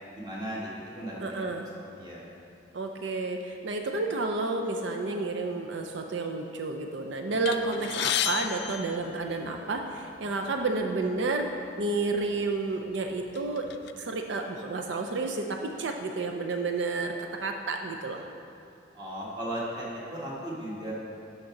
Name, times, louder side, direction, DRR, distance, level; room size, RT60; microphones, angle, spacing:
voice 1, 0.1-1.5 1.7-2.3 7.7-7.9 18.9-20.9, right 1 dB, 25° right, -5 dB, 1.5 m, -36 dB
voice 2, 1.2-1.7 2.7-11.5 11.8-13.7 14.0-17.1 17.4-18.3, right 3 dB, 85° right, 3 dB, 0.5 m, -31 dB
sound 1, 7.4-9.8 10.6-10.7 11.1-11.2 12.1-12.3 12.7-13.9, left 10 dB, 65° left, 0.3 m, -33 dB
6.4 x 5.9 x 5.8 m, 2.6 s
head